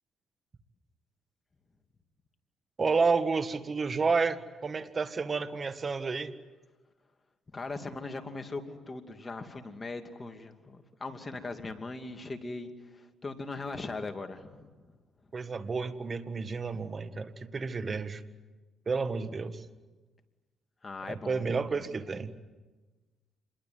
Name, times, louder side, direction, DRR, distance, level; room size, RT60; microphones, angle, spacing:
voice 1, 2.8-6.3 15.3-18.2 18.9-19.7 21.1-22.3, right 4 dB, 35° right, 11 dB, 1.7 m, -30 dB
voice 2, 7.5-12.7 13.2-14.7 20.8-21.4, left 3 dB, 30° left, 6 dB, 2.6 m, -39 dB
27.5 x 22.0 x 9.5 m, 1.3 s
cardioid pair, 90°, 0 cm